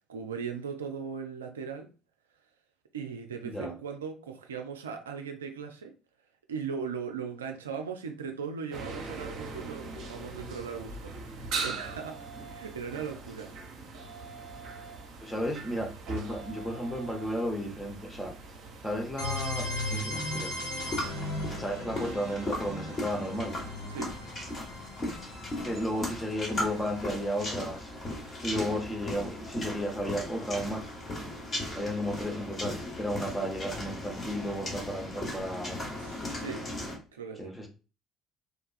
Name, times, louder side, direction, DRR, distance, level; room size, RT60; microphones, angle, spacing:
voice 1, 0.1-1.9 2.9-5.9 6.5-13.5 23.9-24.1 36.0-36.7 37.1-37.5, right 6 dB, 75° right, 0.3 m, -38 dB
sound 1, 8.7-20.0, right 4 dB, 55° right, 0.7 m, -41 dB
voice 2, 15.2-18.3 18.8-20.7 21.6-23.5 25.6-27.9 28.4-30.9 31.7-35.8 37.4-37.7, equal, 10° left, 0.7 m, -33 dB
sound 2, 19.2-28.9, left 1 dB, 80° left, 1.0 m, -38 dB
sound 3, 20.8-37.0, left 1 dB, 35° left, 1.2 m, -37 dB
3.5 x 2.3 x 2.3 m
figure-of-eight pair, 55°, 0 cm